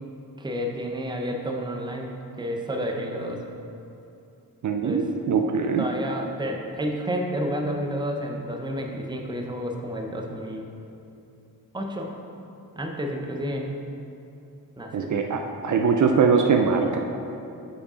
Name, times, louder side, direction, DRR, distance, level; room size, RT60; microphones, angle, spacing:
voice 1, 0.4-3.4 4.8-5.0 5.6-10.7 11.7-12.1 12.8-13.7 14.8-15.2, equal, 10° right, 2 dB, 0.6 m, -30 dB
voice 2, 4.6-5.9 14.9-17.0, right 5 dB, 55° right, 4 dB, 0.5 m, -22 dB
5.1 x 4.8 x 4.9 m, 2.8 s
cardioid pair, 95°, 36 cm